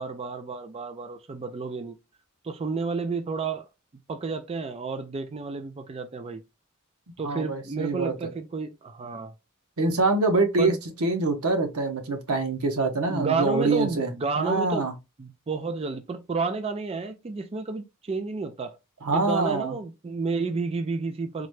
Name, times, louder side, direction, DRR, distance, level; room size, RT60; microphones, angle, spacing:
voice 1, 0.0-2.0 2.4-3.7 4.1-6.4 7.2-9.3 10.6-10.8 13.1-14.9 15.2-18.8 19.1-21.5, right 4 dB, 30° right, 0.4 m, -31 dB
voice 2, 7.2-8.1 9.8-10.7 11.0-14.1 14.4-14.9 19.0-19.8, right 3 dB, 90° right, 0.9 m, -25 dB
3.8 x 2.2 x 3.1 m
head